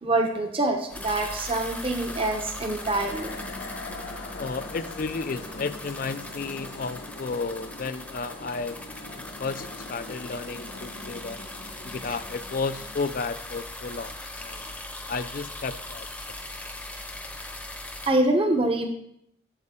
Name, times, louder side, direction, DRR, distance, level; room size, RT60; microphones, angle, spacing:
voice 1, 0.0-3.4 12.1-12.2 18.1-18.9, right 2 dB, 30° right, 4 dB, 0.8 m, -25 dB
sound 1, 0.9-18.1, left 2 dB, 5° left, 0.8 m, -40 dB
sound 2, 2.7-14.1, left 2 dB, 75° left, 0.9 m, -42 dB
voice 2, 4.4-8.8 9.1-11.4 11.8-14.1 14.4-14.8 15.1-16.1, left 4 dB, 50° left, 12 dB, 0.4 m, -33 dB
8.0 x 7.6 x 3.7 m, 0.73 s
head